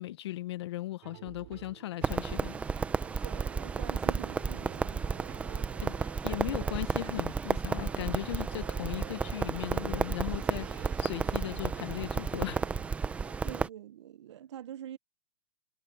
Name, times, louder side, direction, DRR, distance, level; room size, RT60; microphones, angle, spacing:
voice 1, 0.0-2.5 5.8-12.6, left 15 dB, 60° left, 1.2 m, -37 dB
sound 1, 1.0-13.5, right 25 dB, 40° right, 3.5 m, -50 dB
Wind instrument woodwind instrument, 1.7-7.2 7.7-13.5, right 10 dB, 90° right, 3.1 m, -53 dB
Crackle, 2.0-13.7, right 5 dB, 10° right, 0.7 m, -32 dB
voice 2, 3.2-5.0 13.4-15.0, right 11 dB, 65° right, 1.2 m, -45 dB
hypercardioid pair, 160°, 16 cm